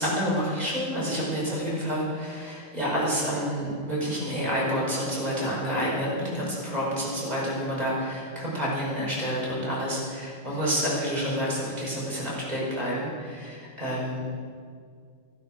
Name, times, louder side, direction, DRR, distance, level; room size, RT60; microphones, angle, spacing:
voice 1, 0.0-14.2, equal, 15° right, -6 dB, 4.9 m, -29 dB
13.0 x 12.0 x 6.3 m, 2.1 s
omnidirectional pair, 3.3 m